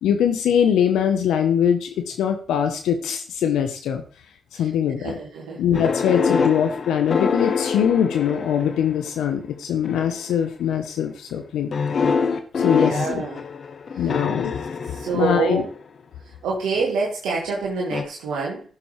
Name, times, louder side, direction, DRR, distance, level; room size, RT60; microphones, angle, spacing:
voice 1, 0.0-4.0 4.5-5.2 5.6-11.7 12.6-13.1 14.0-14.5 15.1-15.6, left 8 dB, 85° left, 6 dB, 0.8 m, -22 dB
voice 2, 5.0-5.7 12.6-13.4 14.0-14.1 14.9-15.7 16.4-18.6, right 4 dB, 85° right, -3 dB, 1.6 m, -26 dB
sound 1, 5.7-9.1 9.8-10.3 11.7-15.8 17.9-18.0, left 5 dB, 60° left, 1.1 m, -25 dB
15.0 x 6.9 x 3.2 m, 0.39 s
supercardioid pair, 40°, 0 cm